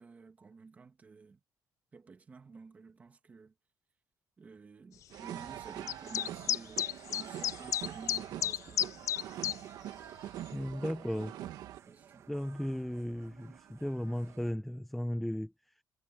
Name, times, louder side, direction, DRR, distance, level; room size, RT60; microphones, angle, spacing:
voice 1, 0.0-1.4 1.9-3.5 4.4-9.0 11.8-12.2, right 4 dB, 20° right, 1.9 m, -52 dB
sound 1, 5.1-11.8, right 12 dB, 65° right, 1.8 m, -44 dB
sound 2, 5.3-14.5, right 9 dB, 40° right, 1.3 m, -57 dB
sound 3, 5.9-9.6, left 11 dB, 45° left, 0.4 m, -32 dB
voice 2, 10.5-11.4 12.3-15.5, equal, ahead, 0.7 m, -35 dB
cardioid pair, 180°, 7 cm